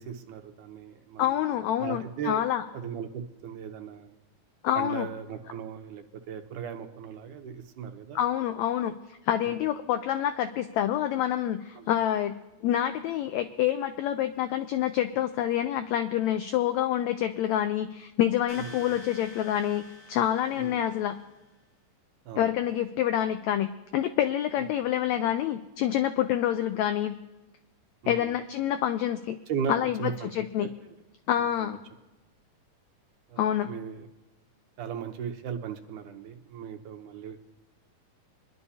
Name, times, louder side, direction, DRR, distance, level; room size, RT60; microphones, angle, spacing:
voice 1, 0.0-1.4 1.8-2.5 2.7-4.1 4.7-8.2 9.4-9.5 11.8-11.9 18.6-18.9 20.6-20.8 22.3-22.5 24.6-24.7 28.0-28.3 29.5-30.9 31.6-31.8 33.3-34.1 34.8-37.4, right 7 dB, 75° right, 5 dB, 2.3 m, -37 dB
voice 2, 1.2-2.6 4.6-5.1 8.1-8.9 9.2-12.3 12.6-19.8 20.1-21.2 22.4-27.1 28.1-29.4 29.7-30.7 31.3-31.8 33.4-33.7, left 11 dB, 85° left, 9 dB, 1.6 m, -27 dB
sound 1, 18.5-21.4, left 1 dB, 70° left, 6.6 m, -49 dB
24.5 x 11.0 x 2.8 m, 1.1 s
omnidirectional pair, 3.7 m